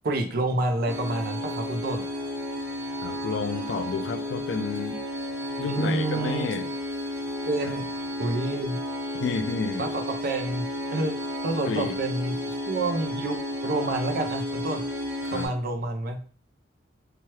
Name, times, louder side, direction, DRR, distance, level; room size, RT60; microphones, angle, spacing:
voice 1, 0.0-2.1 5.7-6.5 7.5-7.8 8.2-8.8 9.8-10.6 10.9-11.2 11.4-14.8 15.3-16.2, right 2 dB, 55° right, 0.5 m, -28 dB
sound 1, 0.9-15.5, left 1 dB, 10° right, 0.8 m, -32 dB
voice 2, 3.0-5.0 5.6-6.7 9.2-9.9 11.7-12.0 15.2-15.5, left 4 dB, 65° left, 0.3 m, -30 dB
2.9 x 2.3 x 3.0 m
head